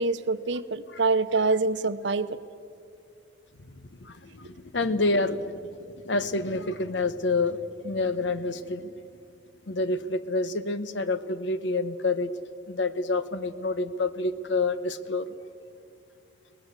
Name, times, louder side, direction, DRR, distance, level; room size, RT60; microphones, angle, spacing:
voice 1, 0.0-2.4, right 3 dB, 75° right, 0.8 m, -25 dB
voice 2, 3.6-5.6 6.0-8.9 9.7-12.3 12.7-15.3, left 3 dB, 75° left, 1.1 m, -28 dB
22.5 x 19.0 x 8.1 m
head